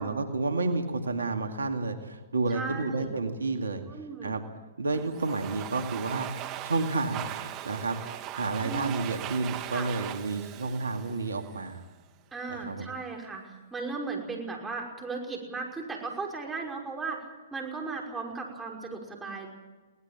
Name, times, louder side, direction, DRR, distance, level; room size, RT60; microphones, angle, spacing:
voice 1, 0.0-3.8 4.2-4.4 4.8-8.0 8.3-11.8 12.5-12.9, right 3 dB, 85° right, 6 dB, 2.3 m, -30 dB
voice 2, 2.5-3.1 3.9-4.3 8.6-8.9 9.7-9.9 12.3-19.5, right 4 dB, 10° right, 0 dB, 5.6 m, -36 dB
Domestic sounds home sounds, 4.9-11.8, right 13 dB, 35° right, 1.7 m, -39 dB
22.0 x 18.5 x 7.5 m, 1.3 s
hypercardioid pair, 125°, 0 cm